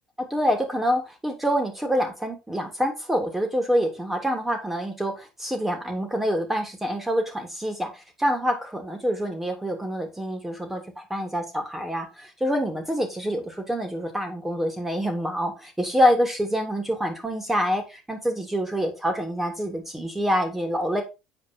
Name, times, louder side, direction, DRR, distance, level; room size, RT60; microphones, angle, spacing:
voice 1, 0.3-21.0, equal, 10° right, 4 dB, 3.0 m, -26 dB
8.5 x 4.7 x 4.6 m, 0.26 s
supercardioid pair, 85°, 3 cm